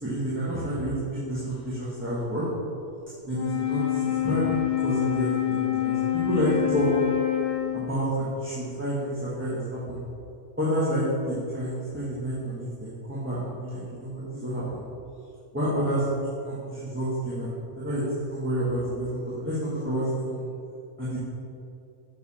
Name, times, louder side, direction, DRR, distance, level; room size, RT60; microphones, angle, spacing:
voice 1, 0.0-2.4 3.3-6.9 7.7-10.0 10.6-14.8 15.5-16.0 16.4-17.5 17.8-20.5 21.0-21.2, equal, 10° right, -11 dB, 1.3 m, -29 dB
Wind instrument woodwind instrument, 3.3-8.1, left 13 dB, 80° left, 1.5 m, -27 dB
6.9 x 6.8 x 4.2 m, 2.6 s
omnidirectional pair, 1.6 m